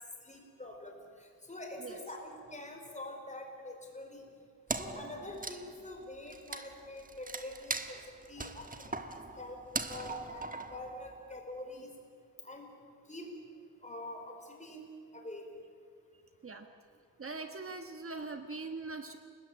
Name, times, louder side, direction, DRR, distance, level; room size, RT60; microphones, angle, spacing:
voice 1, 0.2-4.3 4.7-9.6 9.9-11.9 12.4-12.7 13.1-13.3 13.8-14.8 15.1-15.5, left 1 dB, 20° left, 2 dB, 4.5 m, -45 dB
Wood, 4.7-11.4, right 3 dB, 25° right, 1.3 m, -41 dB
voice 2, 17.2-19.2, right 3 dB, 40° right, 6 dB, 1.4 m, -41 dB
29.0 x 19.5 x 8.9 m, 2.3 s
wide cardioid pair, 150°, 34 cm